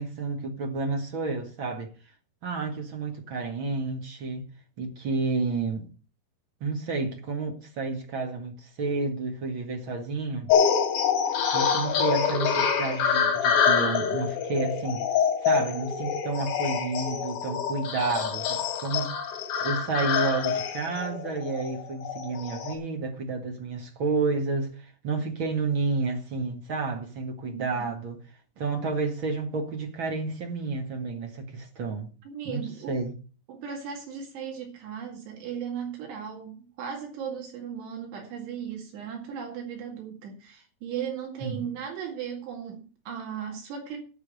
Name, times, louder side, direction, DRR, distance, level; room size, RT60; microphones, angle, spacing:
voice 1, 0.0-1.9 2.4-4.4 4.8-5.9 6.6-10.5 11.5-15.0 15.4-19.1 19.6-28.2 28.6-32.1 32.4-33.1 41.4-41.7, right 4 dB, 45° right, 1.8 m, -30 dB
sound 1, 10.5-22.7, left 7 dB, 85° left, 4.8 m, -26 dB
voice 2, 27.4-27.9 32.3-33.0 33.5-44.0, right 7 dB, 85° right, 4.2 m, -37 dB
11.0 x 6.0 x 8.2 m
omnidirectional pair, 4.7 m